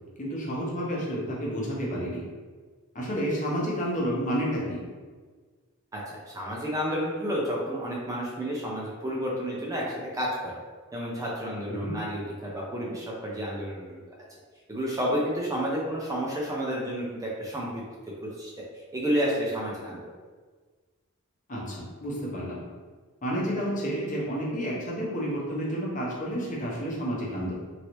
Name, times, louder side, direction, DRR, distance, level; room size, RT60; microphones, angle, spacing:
voice 1, 0.2-2.2 2.9-4.8 11.7-11.9 21.5-22.6 23.2-27.5, equal, 35° left, -4 dB, 0.8 m, -30 dB
voice 2, 5.9-10.5 10.9-14.0 14.7-17.8 18.4-20.1, equal, 15° right, -4 dB, 0.4 m, -31 dB
3.1 x 2.7 x 3.0 m, 1.5 s
head